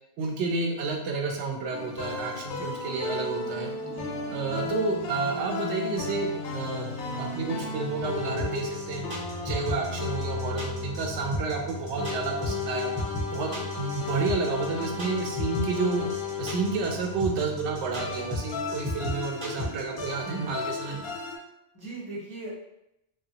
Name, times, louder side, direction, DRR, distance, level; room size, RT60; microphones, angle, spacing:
voice 1, 0.2-3.7 4.3-6.9 7.2-9.0 9.4-12.9 13.3-16.0 16.4-21.1, right 4 dB, 75° right, 2 dB, 0.8 m, -30 dB
sound 1, 1.7-21.4, left 4 dB, 65° left, 0.7 m, -34 dB
voice 2, 3.8-4.3 21.7-22.5, right 2 dB, 30° left, -7 dB, 0.5 m, -39 dB
sound 2, 8.4-20.1, left 1 dB, 25° right, 0.6 m, -33 dB
2.8 x 2.3 x 2.7 m, 0.84 s
omnidirectional pair, 1.2 m